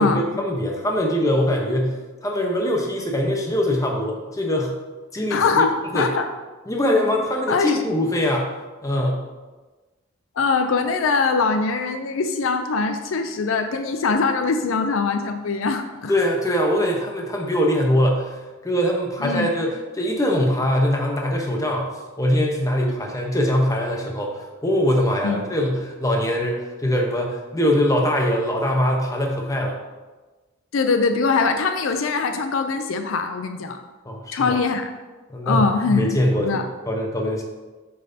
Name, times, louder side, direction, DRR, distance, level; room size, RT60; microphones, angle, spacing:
voice 1, 0.0-2.0 2.2-4.7 5.1-5.7 5.9-6.1 6.7-8.5 8.8-9.2 16.1-21.9 22.2-29.8 34.0-34.6 35.3-37.4, left 1 dB, 15° left, 0 dB, 0.9 m, -22 dB
voice 2, 5.1-6.3 7.5-7.8 10.4-16.1 19.2-19.5 25.2-25.4 30.7-33.8 34.3-34.9 35.5-36.1 36.4-36.7, left 4 dB, 70° left, 7 dB, 0.4 m, -22 dB
7.4 x 5.5 x 2.7 m, 1.2 s
head